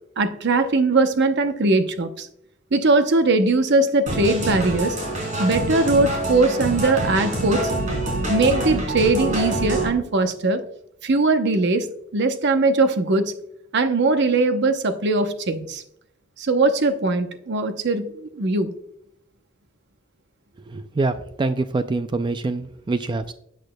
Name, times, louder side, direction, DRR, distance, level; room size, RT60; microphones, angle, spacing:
voice 1, 0.2-2.3 2.7-5.0 5.4-7.7 8.3-10.6 11.0-13.3 13.7-15.8 16.4-18.7, right 3 dB, 55° right, 8 dB, 0.8 m, -20 dB
sound 1, 4.1-9.9, right 1 dB, 40° right, 3.6 m, -26 dB
voice 2, 20.7-23.3, right 3 dB, 20° right, 11 dB, 0.3 m, -25 dB
12.5 x 8.3 x 2.2 m, 0.75 s
head